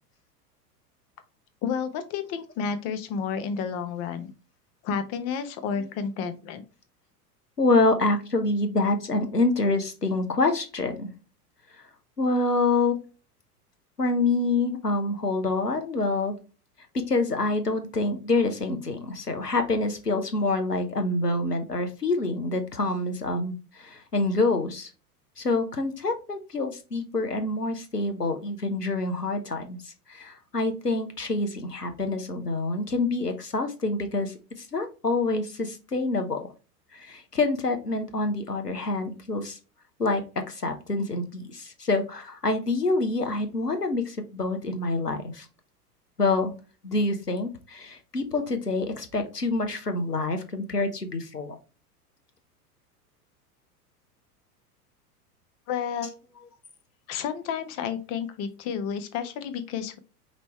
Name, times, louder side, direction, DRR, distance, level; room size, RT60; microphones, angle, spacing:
voice 1, 1.6-4.3 4.8-6.6 55.7-56.1 57.1-60.0, left 7 dB, 35° left, 11 dB, 0.9 m, -31 dB
voice 2, 7.6-11.1 12.2-12.9 14.0-16.3 17.1-24.9 25.4-36.4 36.9-39.6 40.0-45.5 46.2-46.5 46.8-51.6 56.0-56.1, left 2 dB, 90° left, 7 dB, 1.0 m, -26 dB
5.4 x 3.0 x 3.1 m, 0.32 s
figure-of-eight pair, 90°, 46 cm